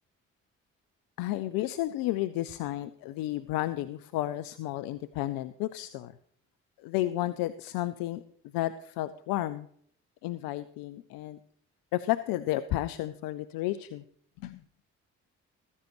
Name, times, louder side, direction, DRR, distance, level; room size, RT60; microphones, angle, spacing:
voice 1, 1.2-6.1 6.8-8.2 8.5-9.7 10.2-11.4 11.9-14.0 14.4-14.6, left 15 dB, 70° left, 14 dB, 0.6 m, -32 dB
15.0 x 14.5 x 3.1 m, 0.63 s
hypercardioid pair, 40°, 36 cm